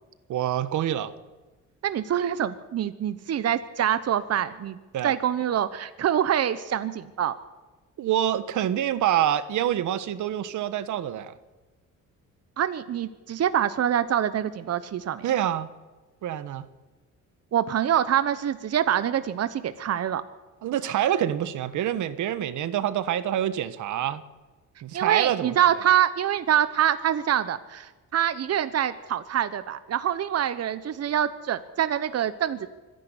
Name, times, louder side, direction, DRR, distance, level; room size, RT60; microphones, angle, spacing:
voice 1, 0.3-1.1 4.9-5.1 8.0-11.3 15.2-15.7 16.2-16.7 20.6-24.2 24.8-25.8, right 11 dB, 75° right, 14 dB, 1.3 m, -26 dB
voice 2, 1.8-4.8 5.0-7.3 12.6-15.3 17.5-20.2 24.9-32.7, right 10 dB, 55° right, 13 dB, 1.1 m, -25 dB
25.0 x 11.0 x 9.9 m, 1.2 s
cardioid pair, 90°, 30 cm